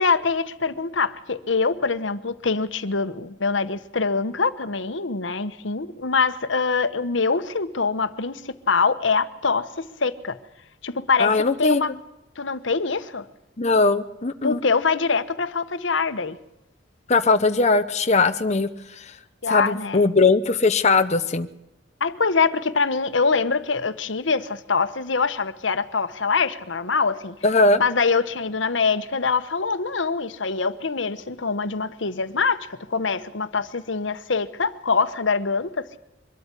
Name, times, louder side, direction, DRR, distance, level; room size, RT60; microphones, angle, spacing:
voice 1, 0.0-10.4 10.8-11.9 12.4-13.3 14.4-16.4 19.4-20.0 22.0-27.3 27.8-36.0, left 4 dB, 70° left, 1.1 m, -24 dB
voice 2, 11.2-11.8 13.6-14.6 17.1-19.2 19.5-21.5 27.4-27.8, left 3 dB, 35° left, 0.8 m, -20 dB
23.5 x 13.0 x 9.8 m
head